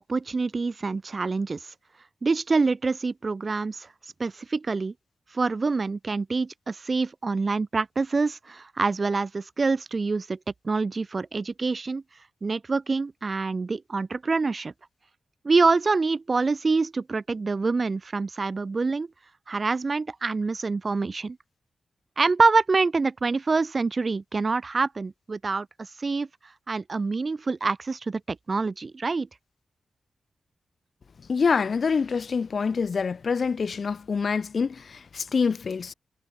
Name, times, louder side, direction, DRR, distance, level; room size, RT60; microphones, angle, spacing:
voice 1, 0.0-1.7 2.2-3.9 4.2-4.9 5.3-10.4 10.6-12.0 12.4-14.7 15.4-19.1 19.5-21.4 22.2-26.3 26.7-29.3, right 4 dB, 45° right, 1.8 m, -26 dB
voice 2, 31.3-35.9, left 5 dB, 60° left, 0.4 m, -26 dB
cardioid pair, 65°, 0 cm